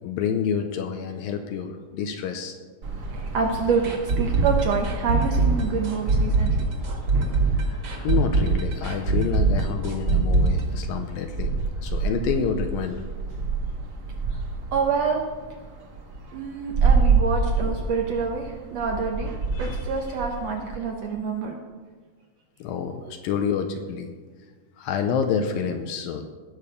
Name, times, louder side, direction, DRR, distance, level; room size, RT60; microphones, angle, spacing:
voice 1, 0.0-2.6 7.5-13.0 19.5-19.8 22.6-24.1 24.8-26.3, left 7 dB, 80° left, 5 dB, 2.4 m, -28 dB
sound 1, 2.8-20.8, right 4 dB, 60° right, 1.0 m, -29 dB
voice 2, 3.3-6.7 14.7-15.2 16.3-19.3 19.6-21.6, right 5 dB, 80° right, 2 dB, 1.5 m, -27 dB
sound 2, 3.8-11.6 11.8-11.9 12.3-12.4, right 3 dB, 40° right, 2.1 m, -22 dB
18.0 x 6.7 x 5.2 m, 1.4 s
omnidirectional pair, 4.2 m